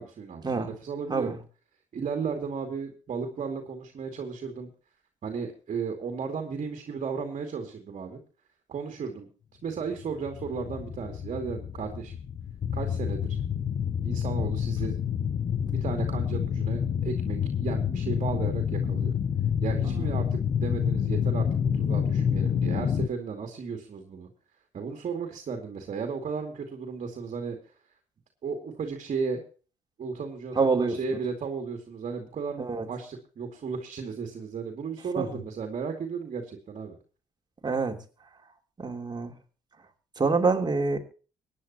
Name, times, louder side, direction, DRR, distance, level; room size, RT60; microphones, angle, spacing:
voice 1, 0.0-1.4 1.9-4.7 5.2-8.2 8.7-9.3 9.6-12.1 12.7-13.4 14.0-15.0 15.7-19.1 19.6-24.3 24.7-27.6 28.4-29.4 30.0-37.0, right 5 dB, 50° right, 4 dB, 2.5 m, -34 dB
sound 1, 9.9-23.1, left 8 dB, 45° left, 0.9 m, -28 dB
voice 2, 30.5-31.2 32.6-32.9 35.2-35.3 37.6-38.0 38.8-39.3 40.2-41.0, right 4 dB, 30° right, 3 dB, 2.9 m, -26 dB
24.0 x 9.8 x 2.9 m, 0.38 s
hypercardioid pair, 55°, 15 cm